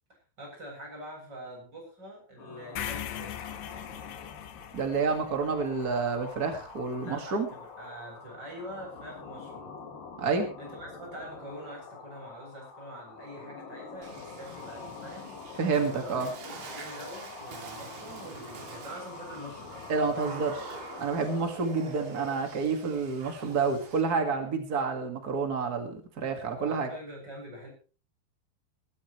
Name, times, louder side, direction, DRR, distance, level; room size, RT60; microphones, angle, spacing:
voice 1, 0.4-3.4 7.0-9.7 10.6-15.4 15.8-16.2 16.4-20.5 26.6-27.7, equal, 20° right, 0 dB, 8.3 m, -44 dB
sound 1, 2.4-21.6, left 5 dB, 55° left, 3.7 m, -46 dB
sound 2, 2.8-6.9, left 12 dB, 90° left, 3.6 m, -41 dB
voice 2, 4.7-7.5 10.2-10.5 15.6-16.3 19.9-20.6 21.0-26.9, right 4 dB, 75° right, 5 dB, 0.8 m, -29 dB
Water / Splash splatter, 14.0-24.0, right 4 dB, 55° right, 4.0 m, -45 dB
21.5 x 12.5 x 3.2 m, 0.36 s
omnidirectional pair, 5.2 m